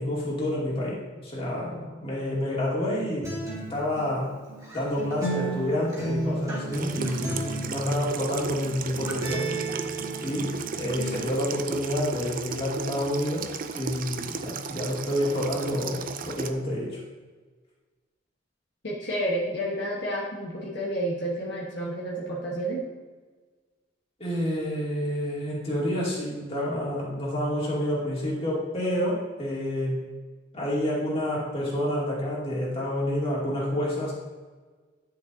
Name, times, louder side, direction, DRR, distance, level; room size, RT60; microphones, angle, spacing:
voice 1, 0.0-3.3 3.7-4.3 4.7-9.5 10.2-10.5 10.7-13.5 13.7-17.0 24.2-30.0 30.5-34.1, left 1 dB, 30° left, -5 dB, 2.5 m, -29 dB
Acoustic guitar, 3.2-11.2, right 2 dB, 20° right, 2.1 m, -33 dB
Water tap faucet / Sink (filling or washing), 6.7-16.5, right 6 dB, 45° right, 0.5 m, -36 dB
voice 2, 18.8-22.8, right 1 dB, 60° left, -4 dB, 1.3 m, -30 dB
10.5 x 6.8 x 2.7 m, 1.4 s
head